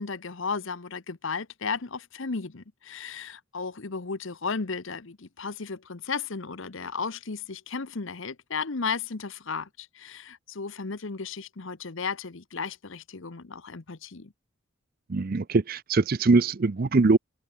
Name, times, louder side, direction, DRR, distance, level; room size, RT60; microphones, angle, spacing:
voice 1, 0.0-14.3, left 5 dB, 60° left, 0.9 m, -34 dB
voice 2, 15.1-17.2, right 3 dB, 40° right, 0.5 m, -22 dB
head